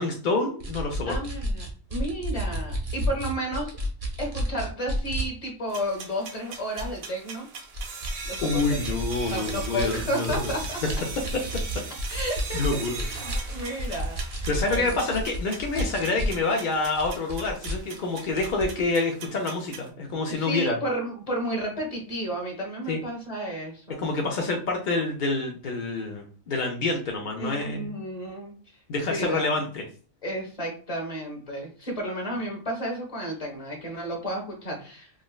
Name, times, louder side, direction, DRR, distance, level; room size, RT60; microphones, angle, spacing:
voice 1, 0.0-1.2 8.4-10.5 11.3-11.6 12.5-13.1 14.5-20.8 22.9-23.0 24.0-27.9 28.9-29.8, left 3 dB, 65° left, 1 dB, 0.5 m, -27 dB
sound 1, 0.6-5.3 5.8-5.9 6.5-7.0 7.6-16.4 16.7-18.8, equal, 40° right, 0.6 m, -31 dB
voice 2, 1.1-3.8 4.2-7.5 8.2-9.0 9.3-10.8 12.1-15.0 20.3-24.1 27.4-28.5 29.1-29.5 30.2-35.1, equal, 30° left, 0 dB, 1.1 m, -32 dB
sound 2, 5.7-19.9, right 5 dB, 80° right, 1.1 m, -40 dB
4.9 x 2.0 x 2.2 m, 0.40 s
omnidirectional pair, 1.4 m